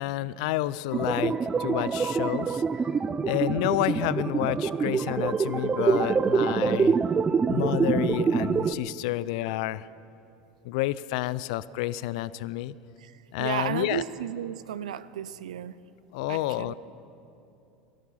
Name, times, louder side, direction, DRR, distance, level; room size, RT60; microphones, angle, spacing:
voice 1, 0.0-2.6 3.2-7.0 7.5-9.9 10.6-12.7 13.3-14.0 16.1-16.7, left 16 dB, 70° left, 18 dB, 0.4 m, -29 dB
sound 1, 0.9-8.8, right 5 dB, 20° right, 0.4 m, -25 dB
voice 2, 13.4-15.7 16.3-16.7, right 10 dB, 90° right, 16 dB, 0.5 m, -33 dB
17.5 x 13.5 x 5.7 m, 2.7 s
hypercardioid pair, 95°, 4 cm